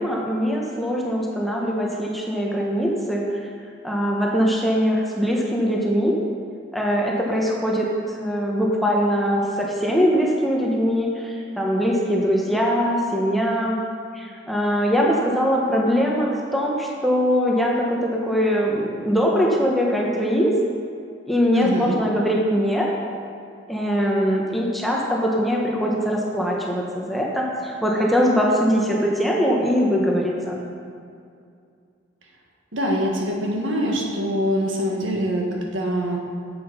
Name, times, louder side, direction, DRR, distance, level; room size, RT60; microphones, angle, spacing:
voice 1, 0.0-3.2 3.8-6.2 6.7-13.8 14.1-20.5 21.3-22.9 23.7-30.6, equal, ahead, -3 dB, 1.0 m, -22 dB
voice 2, 21.5-22.0 32.7-36.2, equal, 80° right, -1 dB, 1.6 m, -24 dB
7.9 x 7.6 x 5.6 m, 2.4 s
head